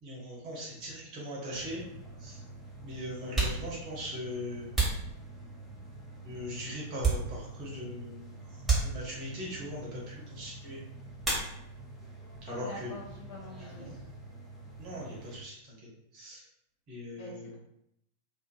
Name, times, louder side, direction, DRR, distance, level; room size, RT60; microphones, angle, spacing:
voice 1, 0.0-1.8 2.2-2.4 2.8-4.7 6.2-8.3 8.8-10.8 12.4-12.9 13.7-13.9 14.8-15.6 16.1-16.4 16.9-17.5, equal, 40° right, -3 dB, 1.0 m, -40 dB
sound 1, 1.5-15.4, right 2 dB, ahead, 0.6 m, -47 dB
sound 2, 3.3-5.8 6.4-7.7 8.0-8.2 8.6-9.4 11.2-12.0 12.3-12.9 13.2-15.4, right 4 dB, 15° right, 1.3 m, -33 dB
voice 2, 12.5-13.9 17.2-17.5, left 1 dB, 55° left, -4 dB, 0.9 m, -45 dB
2.6 x 2.4 x 2.5 m, 0.78 s
figure-of-eight pair, 90°, 0 cm